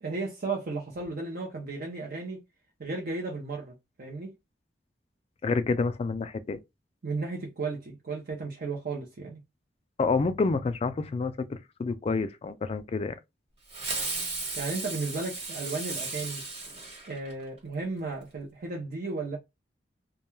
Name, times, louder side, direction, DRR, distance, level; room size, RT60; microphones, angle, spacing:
voice 1, 0.0-2.4 2.8-4.3 7.0-9.4 14.6-16.4 17.1-19.4, right 3 dB, 55° right, 0.6 m, -34 dB
voice 2, 5.4-6.6 10.0-13.1, left 4 dB, 35° left, 0.3 m, -28 dB
Fireworks, 13.7-17.6, right 3 dB, 30° right, 1.1 m, -35 dB
2.2 x 2.2 x 3.0 m
head